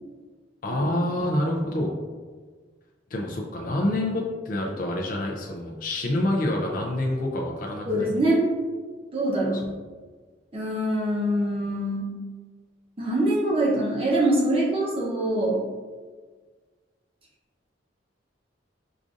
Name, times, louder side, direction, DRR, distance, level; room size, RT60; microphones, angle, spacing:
voice 1, 0.6-1.9 3.1-8.1 9.5-9.6, left 1 dB, 50° left, -1 dB, 0.4 m, -27 dB
voice 2, 7.9-8.4 9.1-9.6 10.5-12.1 13.0-15.6, right 1 dB, 30° right, -4 dB, 0.7 m, -24 dB
4.9 x 2.5 x 2.4 m, 1.5 s
head